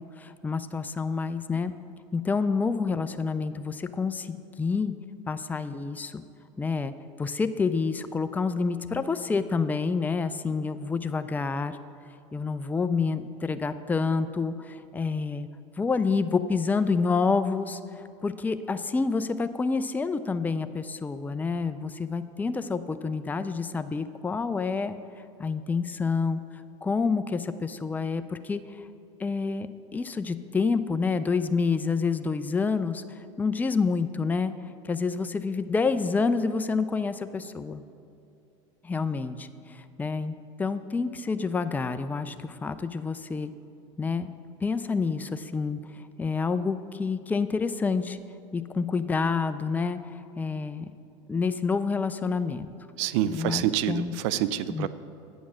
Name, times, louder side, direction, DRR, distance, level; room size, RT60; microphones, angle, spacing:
voice 1, 0.0-1.7 2.1-4.9 5.3-6.2 6.6-6.9 7.2-11.8 12.3-15.5 15.8-25.0 25.4-26.4 26.8-28.9 29.2-34.5 34.8-37.8 38.8-40.3 40.6-43.5 44.0-44.3 44.6-48.2 48.5-50.9 51.3-52.7 53.2-54.1 54.7-54.9, left 4 dB, 10° left, 11 dB, 0.4 m, -28 dB
voice 2, 53.0-54.9, right 12 dB, 65° right, 15 dB, 0.4 m, -27 dB
8.4 x 7.1 x 6.2 m, 2.6 s
hypercardioid pair, 85°, 16 cm